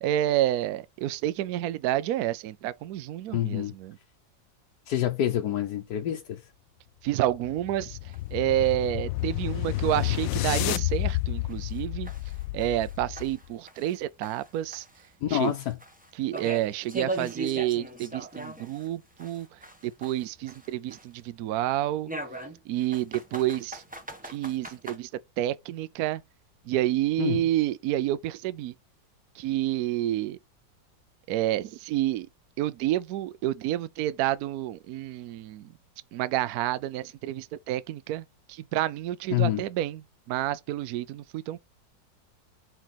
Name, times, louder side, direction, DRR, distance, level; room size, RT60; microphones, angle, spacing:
voice 1, 0.0-4.0 7.0-12.1 12.5-14.9 15.3-15.5 16.2-22.1 22.7-23.8 24.2-25.1 25.4-26.2 26.7-28.7 29.3-30.4 31.3-32.3 32.6-35.7 36.1-41.6, right 13 dB, 70° right, 0.9 m, -29 dB
voice 2, 3.3-3.7 4.9-6.4 15.2-15.8 27.2-27.4 39.3-39.6, left 11 dB, 70° left, 1.3 m, -27 dB
sound 1, 7.1-13.5, left 17 dB, 85° left, 1.3 m, -30 dB
sound 2, 8.1-8.2 8.6-8.7 9.2-9.3 9.7-9.8 10.3-10.4 10.9-11.0 11.5-14.0 14.2-18.9 19.2-21.2 22.1-25.0, right 2 dB, 5° right, 0.6 m, -40 dB
4.6 x 4.5 x 5.8 m
omnidirectional pair, 2.0 m